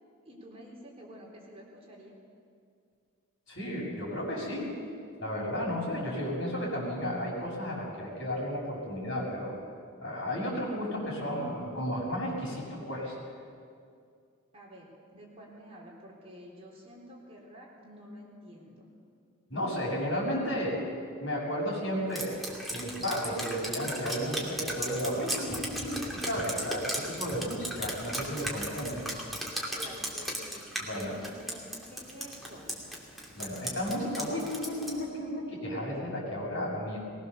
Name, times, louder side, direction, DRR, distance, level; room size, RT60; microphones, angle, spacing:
voice 1, 0.3-2.2 14.5-18.9 29.7-30.7 30.9-32.7, equal, 30° right, -3 dB, 3.9 m, -49 dB
voice 2, 3.5-4.7 5.2-9.5 10.0-13.1 19.5-20.7 21.2-22.4 22.7-29.0 30.8-31.1 33.4-37.0, equal, 60° left, -3 dB, 6.9 m, -33 dB
Drip, 22.1-35.0, equal, ahead, 2.7 m, -36 dB
21.0 x 20.0 x 6.9 m, 2.3 s
head